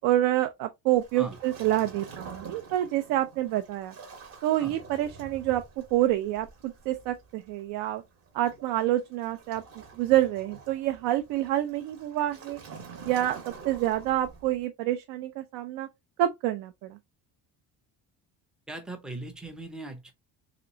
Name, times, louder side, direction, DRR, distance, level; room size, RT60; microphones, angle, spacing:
voice 1, 0.0-3.9 4.4-5.6 5.9-8.0 8.3-9.6 10.0-12.6 13.1-13.4 13.6-15.9 16.2-17.0, right 14 dB, 80° right, 0.5 m, -27 dB
Waves surf, 1.0-14.6, right 5 dB, 40° right, 0.9 m, -47 dB
voice 2, 18.7-20.1, right 2 dB, ahead, 0.3 m, -39 dB
3.1 x 2.9 x 2.6 m
cardioid pair, 175°, 34 cm